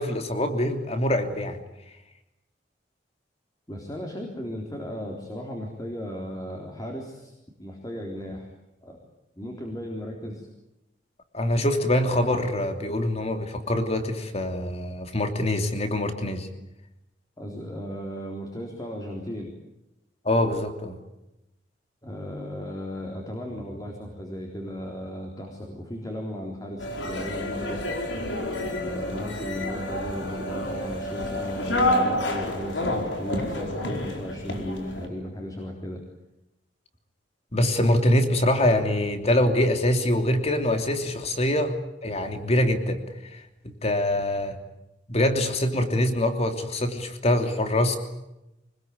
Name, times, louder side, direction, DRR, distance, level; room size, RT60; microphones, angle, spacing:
voice 1, 0.0-1.6 11.3-16.5 20.2-21.0 37.5-43.0 43.3-43.4 43.8-44.6 45.1-48.0, left 1 dB, 35° left, 6 dB, 3.0 m, -24 dB
voice 2, 3.7-7.3 7.6-8.5 8.8-9.0 9.3-10.5 17.4-19.5 22.0-27.8 28.8-36.0, equal, 20° left, 0 dB, 3.8 m, -35 dB
sound 1, 26.8-35.1, left 1 dB, 80° left, 4.7 m, -29 dB
25.0 x 21.0 x 9.6 m, 0.91 s
head